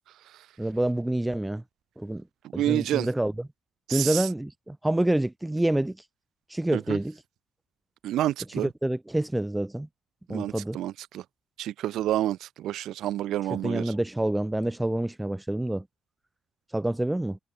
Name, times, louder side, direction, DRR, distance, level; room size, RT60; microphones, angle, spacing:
voice 1, 0.6-1.6 2.0-2.2 2.5-3.3 3.9-6.0 6.5-7.2 8.8-9.9 10.3-10.8 13.5-15.8 16.7-17.4, right 1 dB, 10° right, 6.1 m, -27 dB
voice 2, 2.5-3.1 3.9-4.3 6.7-7.0 8.0-8.7 10.3-11.2 11.6-13.9, right 13 dB, 80° right, 1.1 m, -29 dB
cardioid pair, 90°, 0 cm